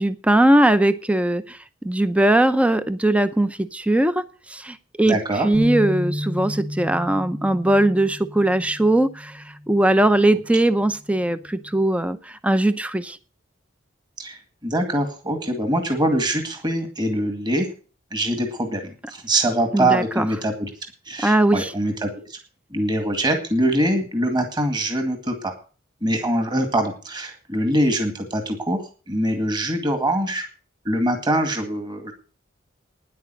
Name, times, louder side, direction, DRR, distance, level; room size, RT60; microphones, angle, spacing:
voice 1, 0.0-1.6 1.8-13.2 19.7-20.3 21.2-21.7, right 1 dB, 5° right, 12 dB, 0.6 m, -20 dB
voice 2, 5.1-5.5 14.2-17.7 18.1-20.7 21.1-22.4 22.7-25.5 26.0-30.5 30.8-32.1, right 1 dB, 25° right, 5 dB, 2.1 m, -23 dB
sound 1, 5.5-9.8 10.3-10.5 11.3-11.8, equal, 85° right, 6.2 m, -32 dB
10.0 x 9.3 x 7.7 m, 0.38 s
head